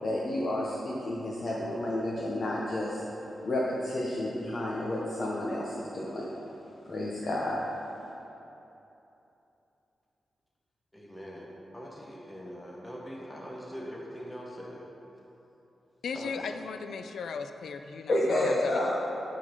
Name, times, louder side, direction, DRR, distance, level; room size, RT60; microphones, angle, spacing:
voice 1, 0.0-3.0 3.4-6.3 6.8-7.6 18.1-18.9, left 1 dB, 45° left, -5 dB, 0.9 m, -30 dB
voice 2, 10.9-14.8 16.1-16.3, equal, 10° left, -3 dB, 0.9 m, -42 dB
voice 3, 16.0-18.2 18.4-18.9, left 5 dB, 85° left, 8 dB, 0.3 m, -37 dB
9.6 x 3.9 x 5.2 m, 3.0 s
wide cardioid pair, 135°, 0 cm